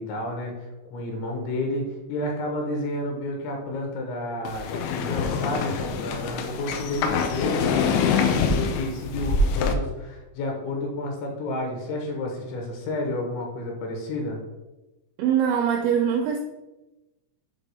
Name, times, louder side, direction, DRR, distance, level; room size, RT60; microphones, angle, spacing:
voice 1, 0.0-14.4, left 1 dB, 70° left, 1 dB, 3.2 m, -31 dB
sound 1, 4.5-9.7, left 5 dB, 90° left, 2.7 m, -25 dB
voice 2, 15.2-16.4, right 8 dB, 85° right, 2 dB, 2.6 m, -22 dB
8.1 x 3.7 x 5.5 m, 1.0 s
omnidirectional pair, 5.9 m